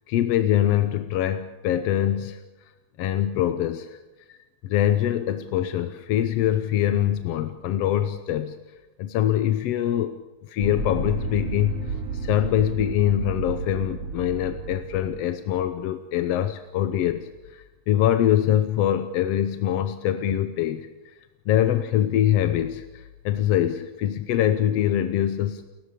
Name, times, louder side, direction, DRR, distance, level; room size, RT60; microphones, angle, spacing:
voice 1, 0.1-2.4 3.0-4.0 4.3-4.4 4.6-8.6 9.0-10.1 10.4-21.2 21.5-25.7, left 11 dB, 70° left, 10 dB, 1.8 m, -24 dB
sound 1, 10.6-15.2, right 3 dB, 50° right, 4.2 m, -31 dB
29.0 x 14.5 x 8.4 m, 1.1 s
omnidirectional pair, 3.4 m